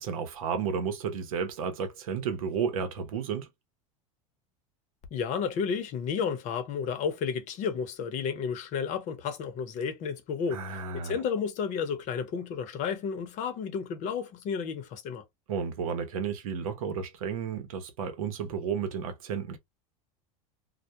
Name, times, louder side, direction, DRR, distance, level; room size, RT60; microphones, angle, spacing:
voice 1, 0.0-3.5 10.5-11.2 15.5-19.6, right 6 dB, 85° right, 0.7 m, -32 dB
voice 2, 5.1-15.2, left 6 dB, 45° left, 0.7 m, -32 dB
2.1 x 2.1 x 2.7 m
supercardioid pair, 115°, 17 cm